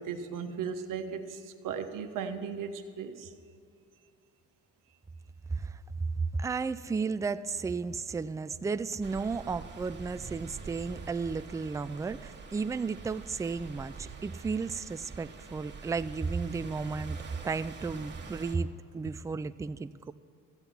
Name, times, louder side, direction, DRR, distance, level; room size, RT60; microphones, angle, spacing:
voice 1, 0.0-3.3, right 6 dB, 70° right, 1.2 m, -37 dB
voice 2, 5.5-5.8 6.2-17.2 17.4-20.1, right 4 dB, 10° right, 0.3 m, -33 dB
sound 1, 9.0-18.6, right 4 dB, 35° right, 1.6 m, -46 dB
14.5 x 8.0 x 7.1 m
cardioid pair, 105°, 33 cm